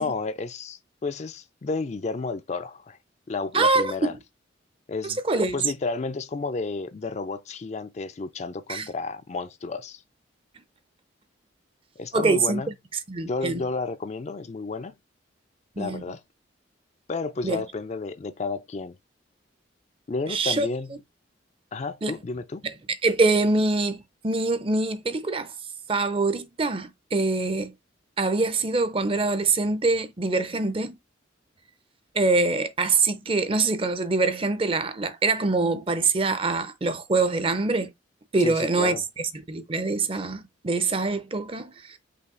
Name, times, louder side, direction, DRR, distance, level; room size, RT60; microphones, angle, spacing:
voice 1, 0.0-3.0 3.3-4.2 4.9-10.0 12.0-12.7 13.3-14.9 15.8-16.2 17.1-19.0 20.1-20.9 21.7-22.6 38.4-39.0, left 3 dB, 35° left, 0.4 m, -31 dB
voice 2, 3.5-4.1 5.3-5.6 8.7-8.9 12.1-12.6 13.1-13.6 15.8-16.0 17.4-17.6 20.3-20.7 22.0-22.2 22.6-22.7 23.0-25.5 25.9-27.7 28.2-31.0 32.1-37.9 38.3-42.0, right 3 dB, 30° right, 0.6 m, -24 dB
5.6 x 2.3 x 3.7 m
head